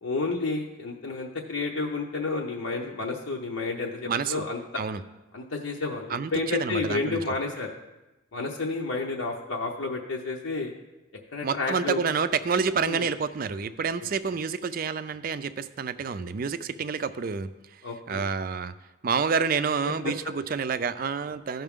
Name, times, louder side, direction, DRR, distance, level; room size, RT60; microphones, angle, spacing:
voice 1, 0.0-4.6 5.3-7.7 8.3-10.7 11.3-12.0 12.8-13.1 17.8-18.2 20.0-20.1, left 3 dB, 80° left, -2 dB, 0.8 m, -30 dB
voice 2, 4.1-4.4 4.8-5.0 6.1-7.2 11.4-17.5 18.1-18.7 19.0-21.6, right 5 dB, 45° right, 13 dB, 0.4 m, -28 dB
15.5 x 5.8 x 3.6 m, 1.0 s
head